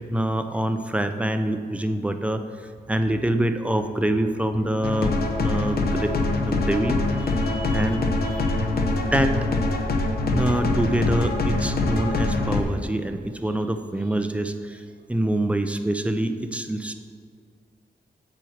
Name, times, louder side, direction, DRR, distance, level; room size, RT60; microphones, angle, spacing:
voice 1, 0.1-2.4 2.9-7.0 7.7-8.0 8.9-9.3 10.3-14.8 15.1-16.9, right 1 dB, 5° right, 7 dB, 0.4 m, -25 dB
sound 1, 4.8-12.6, left 2 dB, 65° left, 0.8 m, -24 dB
voice 2, 7.1-9.2, right 1 dB, 65° right, -3 dB, 2.2 m, -42 dB
8.5 x 4.5 x 6.4 m, 2.1 s
wide cardioid pair, 175°, 17 cm